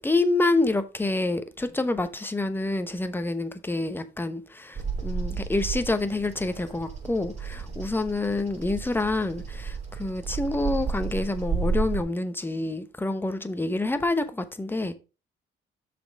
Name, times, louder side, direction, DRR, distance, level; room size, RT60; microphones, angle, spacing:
voice 1, 0.0-15.0, left 2 dB, 10° left, 0.9 m, -27 dB
Bird vocalization bird call bird song, 4.7-12.0, right 5 dB, 35° right, 2.8 m, -32 dB
6.5 x 4.4 x 5.1 m
cardioid pair, 90°, 20 cm